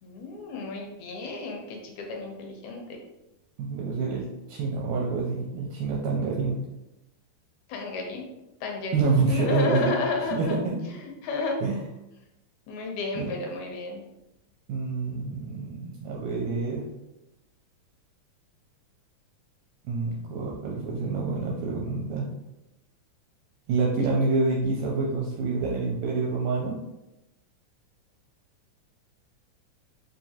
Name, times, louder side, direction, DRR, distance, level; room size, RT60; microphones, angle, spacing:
voice 1, 0.0-3.0 7.7-8.2 8.6-10.6 10.9-11.6 12.7-14.0, left 3 dB, 80° left, 2 dB, 2.1 m, -32 dB
voice 2, 3.6-6.6 8.9-9.9 10.3-10.8 11.6-11.8 13.1-13.3 14.7-16.9 19.9-22.3 23.7-26.8, right 4 dB, 80° right, -3 dB, 1.9 m, -27 dB
4.7 x 2.8 x 2.8 m, 0.94 s
omnidirectional pair, 3.4 m